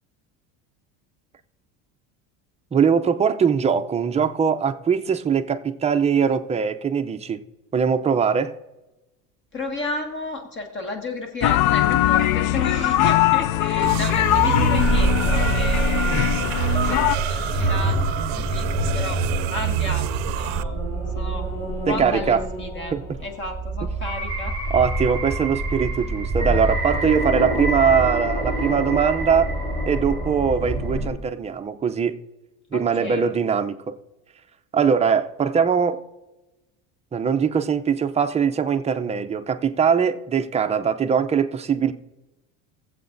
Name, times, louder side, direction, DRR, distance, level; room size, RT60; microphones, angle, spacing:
voice 1, 2.7-7.4 7.7-8.5 21.9-22.4 22.9-23.0 23.8-23.9 24.7-29.5 29.9-32.2 32.7-34.0 34.7-36.0 37.1-41.9, right 6 dB, 20° right, 0.5 m, -21 dB
voice 2, 9.5-19.2 19.5-20.8 21.2-21.5 21.9-22.9 23.2-24.6 32.7-33.3, left 2 dB, 30° left, 1.7 m, -32 dB
sound 1, 11.4-17.1, left 14 dB, 55° left, 0.5 m, -21 dB
sound 2, 13.8-20.6, right 12 dB, 70° right, 0.6 m, -27 dB
sound 3, 14.8-31.1, right 1 dB, 10° left, 3.3 m, -26 dB
20.0 x 7.8 x 2.6 m
supercardioid pair, 125°, 37 cm